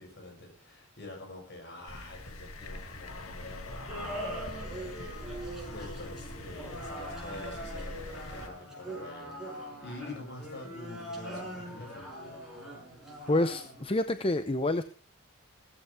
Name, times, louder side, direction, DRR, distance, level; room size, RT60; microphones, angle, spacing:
voice 1, 0.0-12.1, left 2 dB, 50° left, 2 dB, 7.0 m, -46 dB
sound 1, 1.9-8.5, left 1 dB, 80° left, 2.1 m, -43 dB
sound 2, 3.9-13.8, right 1 dB, ahead, 6.4 m, -42 dB
voice 2, 13.3-14.8, left 2 dB, 25° left, 10 dB, 0.7 m, -28 dB
16.5 x 14.5 x 3.5 m, 0.34 s
head